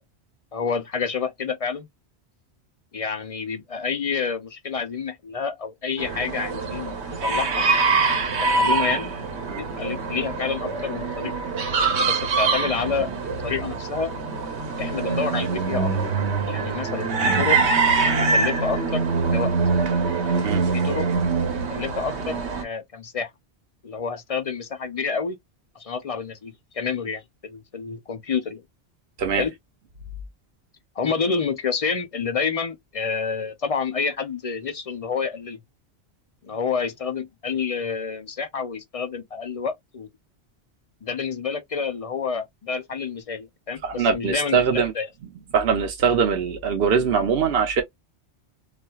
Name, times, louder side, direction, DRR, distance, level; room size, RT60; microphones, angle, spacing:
voice 1, 0.5-1.9 2.9-7.6 8.4-9.1 9.5-11.3 12.0-14.1 14.8-15.9 16.5-17.6 18.2-19.5 20.7-21.1 21.5-23.3 23.8-25.4 25.8-28.6 29.3-29.5 31.0-35.6 36.4-40.1 41.0-45.1, left 5 dB, 45° left, 0.5 m, -28 dB
sound 1, 6.0-22.6, right 4 dB, 85° right, 1.2 m, -24 dB
voice 2, 43.8-44.9 45.5-47.8, right 6 dB, 65° right, 0.8 m, -22 dB
4.2 x 2.4 x 2.2 m
omnidirectional pair, 1.1 m